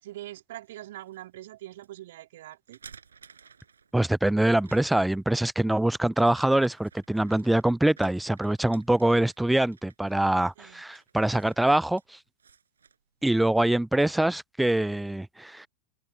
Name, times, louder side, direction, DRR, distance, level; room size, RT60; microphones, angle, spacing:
voice 1, 0.0-2.8 10.6-10.8, right 14 dB, 55° right, 3.5 m, -43 dB
sound 1, 0.6-1.2 1.8-1.9 2.5-4.1 4.6-5.2 6.1-13.6, right 6 dB, 70° right, 7.6 m, -55 dB
voice 2, 3.9-12.0 13.2-15.7, right 1 dB, 5° right, 0.4 m, -24 dB
figure-of-eight pair, 90°, 0 cm